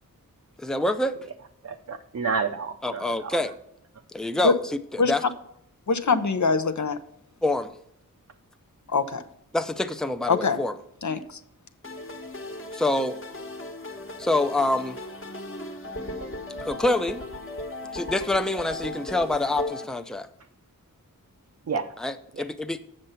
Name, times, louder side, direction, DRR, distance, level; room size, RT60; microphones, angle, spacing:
voice 1, 0.6-1.2 2.8-3.5 4.1-5.2 7.4-7.7 9.5-10.8 12.7-13.2 14.2-15.0 16.6-17.2 17.9-20.3 22.0-22.8, left 2 dB, ahead, 0.5 m, -26 dB
voice 2, 1.6-3.5 21.7-22.0 22.3-22.4, right 5 dB, 50° right, 0.6 m, -30 dB
voice 3, 5.9-7.0 8.9-9.2 10.3-10.6 11.0-11.2, left 4 dB, 55° left, 0.7 m, -22 dB
sound 1, 11.8-19.8, left 1 dB, 35° left, 1.3 m, -36 dB
7.6 x 6.6 x 5.6 m
wide cardioid pair, 65°, 35 cm